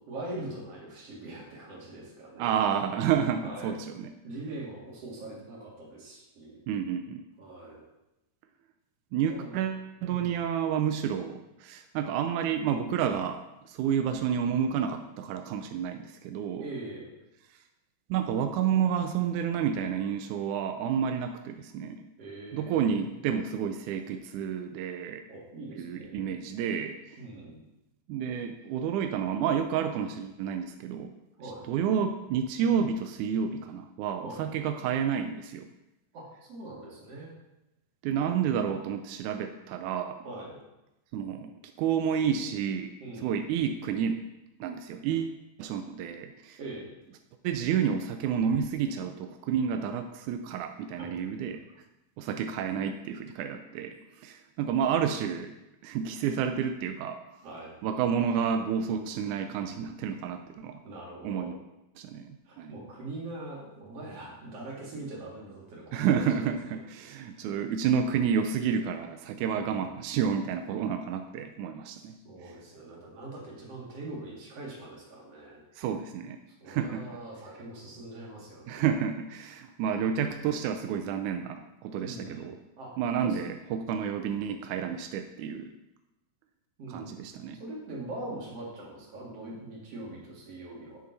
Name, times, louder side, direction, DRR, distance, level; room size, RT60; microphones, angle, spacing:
voice 1, 0.1-2.5 3.4-3.8 4.2-6.6 7.4-7.8 9.3-9.6 10.0-10.4 16.6-17.1 22.2-23.1 25.3-26.1 27.2-27.6 31.4-31.7 34.2-34.4 36.1-37.3 40.2-40.6 43.0-43.4 46.6-46.9 51.0-51.2 51.5-51.6 57.4-57.7 60.8-61.5 62.4-67.5 69.4-69.9 71.9-75.6 76.6-78.9 82.0-82.9 83.2-83.4 86.8-87.2 87.6-91.0, right 2 dB, 45° right, -4 dB, 3.0 m, -42 dB
voice 2, 2.4-4.1 6.7-7.2 9.1-13.4 13.7-16.6 18.1-22.0 22.5-25.2 25.8-27.0 28.1-31.1 31.7-35.7 38.0-40.2 41.1-41.5 41.8-42.9 43.2-44.2 44.6-46.6 47.4-51.6 52.2-55.5 55.8-57.2 57.8-60.8 61.2-61.5 62.0-62.7 65.9-72.2 75.8-76.4 76.7-77.0 78.7-82.6 83.0-85.7 86.9-87.6, right 8 dB, 85° right, 6 dB, 1.7 m, -30 dB
10.5 x 6.5 x 4.0 m, 0.94 s
omnidirectional pair, 4.1 m